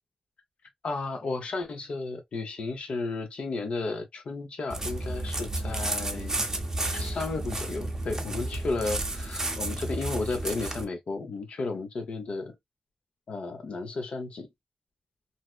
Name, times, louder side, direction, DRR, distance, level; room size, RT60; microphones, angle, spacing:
voice 1, 0.8-6.4 6.8-12.5 13.3-14.5, left 3 dB, 75° left, 0.6 m, -33 dB
sound 1, 4.7-10.8, right 2 dB, 25° right, 0.6 m, -32 dB
2.7 x 2.2 x 2.2 m
wide cardioid pair, 125°, 2 cm